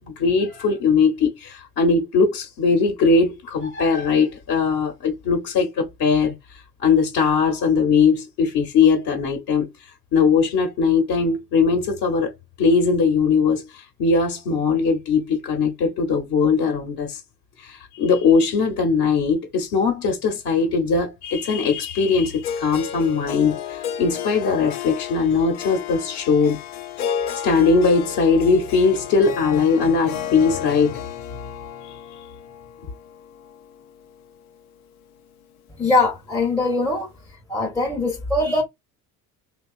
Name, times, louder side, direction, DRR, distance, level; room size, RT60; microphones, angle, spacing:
voice 1, 0.2-6.3 6.8-9.7 10.1-12.3 12.6-17.2 17.6-26.6 27.4-31.0 31.8-31.9, left 5 dB, 50° left, 0.9 m, -20 dB
Harp, 22.4-34.6, left 9 dB, 80° left, 0.5 m, -33 dB
voice 2, 35.8-37.1 37.5-38.6, left 2 dB, 5° left, 0.6 m, -21 dB
2.9 x 2.3 x 2.3 m
hypercardioid pair, 60°, 44 cm